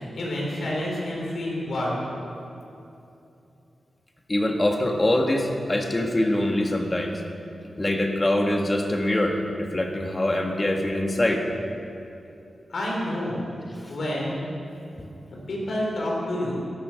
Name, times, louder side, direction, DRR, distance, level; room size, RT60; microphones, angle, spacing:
voice 1, 0.1-2.4 12.7-13.4 13.9-14.4 15.3-16.6, left 1 dB, 65° left, -3 dB, 4.4 m, -29 dB
voice 2, 4.3-7.2 7.8-11.5, left 1 dB, 20° left, 2 dB, 1.6 m, -24 dB
15.5 x 11.0 x 6.4 m, 2.8 s
wide cardioid pair, 115°, 0 cm